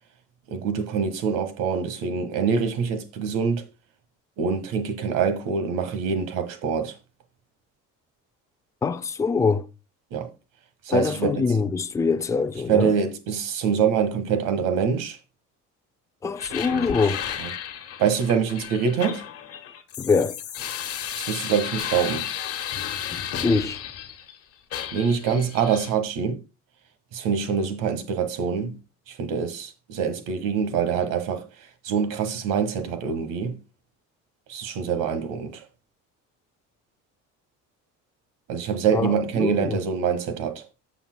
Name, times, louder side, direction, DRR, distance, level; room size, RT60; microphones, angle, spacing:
voice 1, 0.5-3.6 4.4-7.0 10.1-10.3 10.9-11.4 12.7-15.2 16.6-16.9 17.4-17.5 18.0-19.3 21.1-22.3 24.9-26.4 27.1-28.8 29.1-31.5 31.8-33.6 34.5-35.6 38.5-40.7, right 6 dB, 85° right, 1.7 m, -25 dB
voice 2, 8.8-9.7 10.9-12.9 16.2-17.2 20.0-20.4 23.4-23.8 38.9-39.8, left 4 dB, 10° left, 0.4 m, -23 dB
sound 1, 16.4-24.4 24.7-25.9, left 9 dB, 45° left, 1.4 m, -33 dB
13.5 x 7.0 x 2.2 m
cardioid pair, 155°, 32 cm